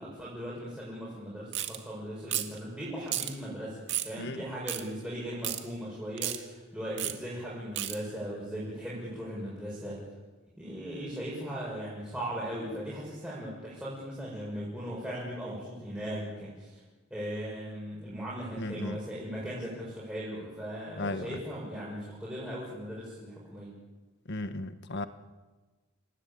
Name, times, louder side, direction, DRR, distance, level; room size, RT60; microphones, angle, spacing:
voice 1, 0.0-10.0 10.6-16.8 17.1-23.7, equal, 5° right, -7 dB, 6.9 m, -38 dB
sound 1, 1.5-1.8 2.3-2.6 3.1-3.3 3.9-4.1 4.7-4.8 5.4-5.6 6.2-6.4 7.0-7.1 7.8-8.0, right 13 dB, 60° right, 2.0 m, -32 dB
voice 2, 18.6-19.0 21.0-21.4 24.3-25.1, left 2 dB, 55° left, 10 dB, 1.5 m, -35 dB
27.5 x 18.0 x 8.9 m, 1.2 s
head